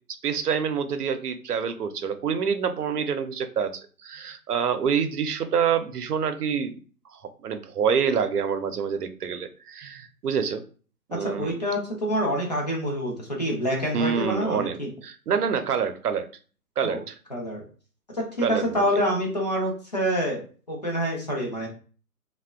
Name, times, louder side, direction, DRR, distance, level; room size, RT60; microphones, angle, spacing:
voice 1, 0.2-6.7 7.1-10.6 11.1-11.6 13.9-16.3 16.8-17.2 18.4-18.9, right 7 dB, 75° right, 9 dB, 0.6 m, -27 dB
voice 2, 11.1-14.9 16.8-17.0 17.3-17.6 18.1-21.7, equal, 30° left, -2 dB, 0.5 m, -27 dB
2.7 x 2.1 x 2.3 m, 0.39 s
figure-of-eight pair, 145°, 46 cm